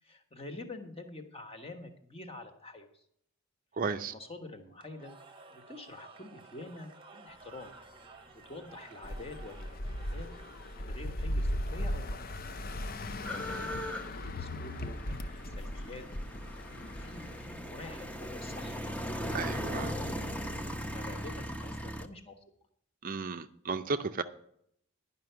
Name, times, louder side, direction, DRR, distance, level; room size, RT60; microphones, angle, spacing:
voice 1, 0.0-3.1 4.0-5.1 5.5-7.7 8.3-9.8 10.1-10.3 10.7-12.2 13.2-16.0 16.5-20.2 20.8-22.4, left 2 dB, 25° left, 5 dB, 1.3 m, -47 dB
voice 2, 3.7-4.1 19.3-19.9 23.0-24.2, right 4 dB, 40° right, 9 dB, 0.5 m, -34 dB
Cheering / Crowd, 4.8-11.1, right 4 dB, 25° right, 0.9 m, -54 dB
sound 1, 9.0-17.4, left 1 dB, 45° left, 0.6 m, -37 dB
sound 2, 11.4-11.5 11.7-22.1, equal, 5° left, 0.7 m, -39 dB
11.0 x 5.7 x 8.0 m, 0.69 s
head